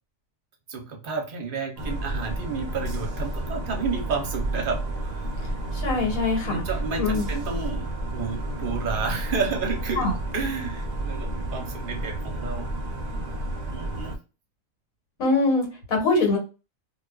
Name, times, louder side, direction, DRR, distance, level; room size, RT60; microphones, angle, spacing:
voice 1, 0.7-5.3 6.4-10.1 10.3-12.7 13.7-14.1, right 5 dB, 50° right, 2 dB, 0.7 m, -31 dB
sound 1, 1.8-14.2, right 1 dB, 85° right, 0.3 m, -31 dB
voice 2, 5.7-6.6 7.0-7.3 10.0-10.1 15.2-16.4, left 3 dB, 85° left, 1 dB, 1.4 m, -23 dB
2.5 x 2.3 x 2.2 m, 0.31 s
omnidirectional pair, 1.4 m